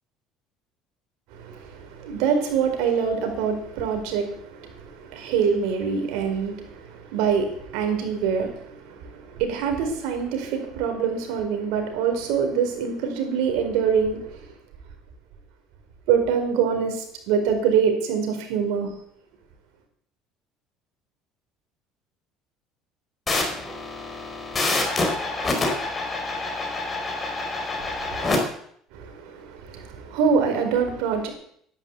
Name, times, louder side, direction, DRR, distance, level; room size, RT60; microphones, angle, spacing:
voice 1, 1.3-14.5 16.1-18.9 27.8-28.4 28.9-31.3, right 6 dB, 80° right, 4 dB, 4.6 m, -25 dB
sound 1, 23.3-28.4, left 2 dB, 25° left, 5.0 m, -27 dB
12.0 x 11.5 x 8.5 m, 0.67 s
supercardioid pair, 100°, 0 cm